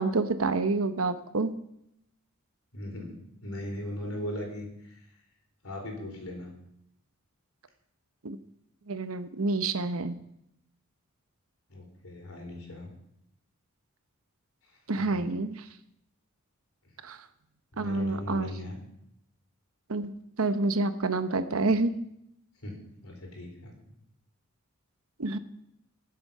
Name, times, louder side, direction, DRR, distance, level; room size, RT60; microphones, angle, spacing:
voice 1, 0.0-1.5 8.2-8.4 8.9-10.2 14.9-15.7 17.0-17.2 17.8-18.5 19.9-21.9 25.2-25.4, right 3 dB, 70° right, 11 dB, 0.9 m, -28 dB
voice 2, 2.7-3.1 3.4-5.0 5.6-6.5 11.7-12.9 15.1-15.3 17.7-18.8 21.5-21.7 22.6-22.7 23.0-23.7, left 1 dB, 70° left, 2 dB, 4.1 m, -38 dB
20.5 x 7.8 x 5.6 m, 0.79 s
head